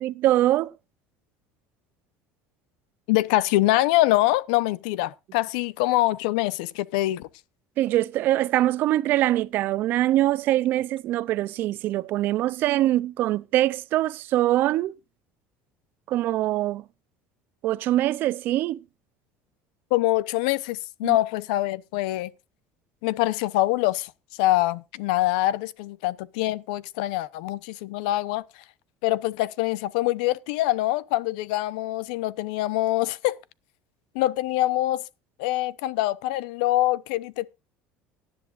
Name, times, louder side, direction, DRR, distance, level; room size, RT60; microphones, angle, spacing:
voice 1, 0.0-0.7 7.8-14.9 16.1-16.8 17.6-18.8 21.0-21.2, right 14 dB, 50° right, 0.5 m, -23 dB
voice 2, 3.1-7.3 19.9-22.3 23.0-24.1 24.4-28.4 29.0-33.4 34.1-35.0 35.4-37.5, left 16 dB, 85° left, 0.8 m, -24 dB
18.0 x 10.5 x 2.5 m
cardioid pair, 140°, 4 cm